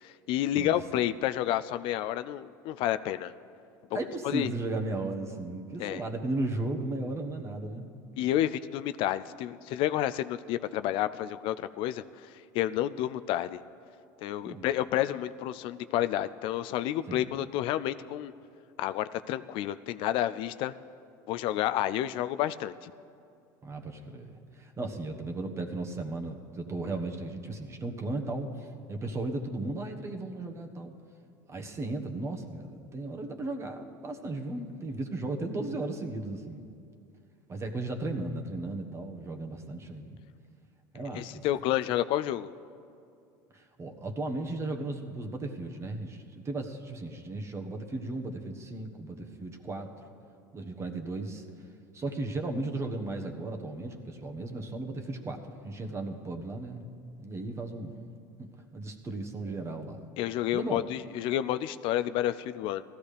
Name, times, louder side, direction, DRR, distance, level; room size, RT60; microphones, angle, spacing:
voice 1, 0.0-3.3 3.9-4.0 4.2-4.5 5.8-6.0 8.2-12.3 12.5-13.6 14.2-18.3 18.8-20.7 21.3-22.9 41.1-42.5 60.2-62.8, left 12 dB, 60° left, 12 dB, 0.4 m, -30 dB
voice 2, 3.9-7.9 14.4-14.7 17.1-17.3 23.6-30.9 31.5-36.6 37.5-40.2 40.9-41.5 43.5-49.9 50.5-51.4 51.9-56.8 57.2-58.0 58.4-60.0 60.5-60.8, right 2 dB, 25° right, 3 dB, 1.3 m, -35 dB
17.0 x 14.0 x 3.4 m, 2.4 s
supercardioid pair, 95°, 10 cm